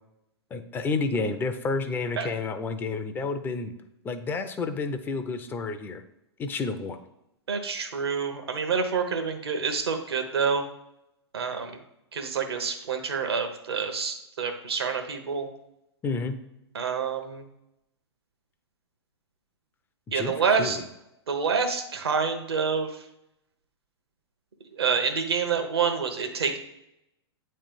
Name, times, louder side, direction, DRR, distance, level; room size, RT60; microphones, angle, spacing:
voice 1, 0.5-3.7 4.0-6.0 6.4-7.0 16.0-16.4 20.1-20.3 20.6-20.8, left 4 dB, 15° left, 7 dB, 0.6 m, -30 dB
voice 2, 7.5-10.6 11.3-11.8 12.1-15.5 16.7-17.4 20.1-20.8 21.3-23.0 24.7-26.6, right 5 dB, 65° right, 5 dB, 1.1 m, -27 dB
8.7 x 3.3 x 5.2 m, 0.84 s
figure-of-eight pair, 105°, 14 cm